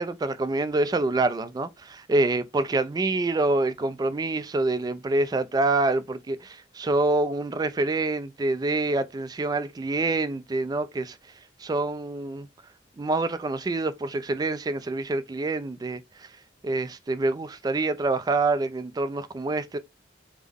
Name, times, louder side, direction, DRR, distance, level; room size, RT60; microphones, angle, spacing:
voice 1, 0.0-11.2 11.6-12.5 13.0-16.3 16.6-19.8, right 2 dB, 20° right, 0.3 m, -26 dB
3.6 x 2.1 x 3.4 m
head